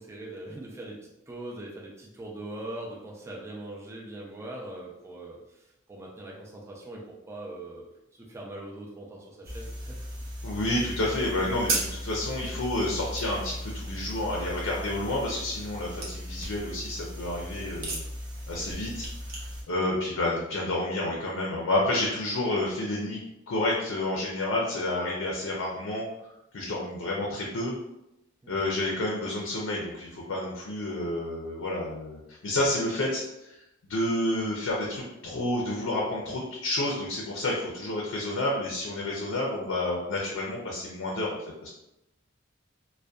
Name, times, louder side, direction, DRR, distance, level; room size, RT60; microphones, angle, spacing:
voice 1, 0.0-7.8 8.1-10.1 18.5-18.8 28.4-28.6, right 1 dB, 15° right, -3 dB, 0.3 m, -41 dB
sound 1, 9.4-19.6, right 1 dB, 50° right, 0.6 m, -36 dB
voice 2, 10.4-18.0 18.5-23.2 23.5-26.0 26.5-27.7 28.5-33.6 33.9-41.4 41.6-41.7, left 1 dB, 85° left, -3 dB, 0.5 m, -30 dB
2.5 x 2.1 x 2.3 m, 0.88 s
head